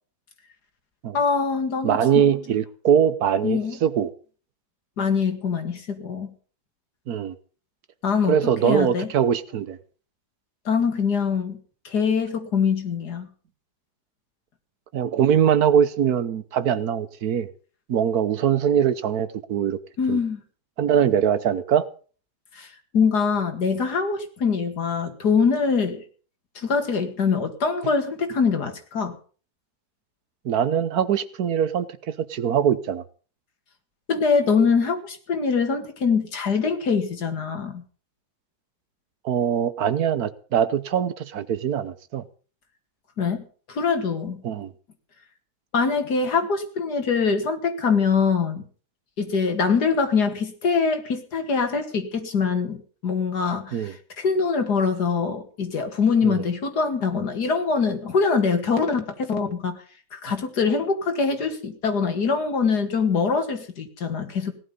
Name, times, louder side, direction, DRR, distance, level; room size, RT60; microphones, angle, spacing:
voice 1, 1.1-2.0 3.4-3.8 5.0-6.3 8.0-8.4 8.6-9.1 10.7-11.6 11.8-13.3 20.0-20.4 22.6-26.0 26.6-29.2 34.1-37.8 43.2-43.4 43.7-44.4 45.7-48.6 49.2-52.8 53.0-59.8 60.1-64.5, left 5 dB, 80° left, 2.5 m, -23 dB
voice 2, 1.8-4.1 7.1-7.3 8.3-9.8 14.9-17.5 17.9-19.8 20.1-20.2 20.8-21.9 30.4-33.0 39.2-42.2 44.4-44.7 53.7-53.9 56.2-56.4, right 8 dB, 70° right, 1.4 m, -22 dB
17.5 x 11.5 x 5.4 m
omnidirectional pair, 1.7 m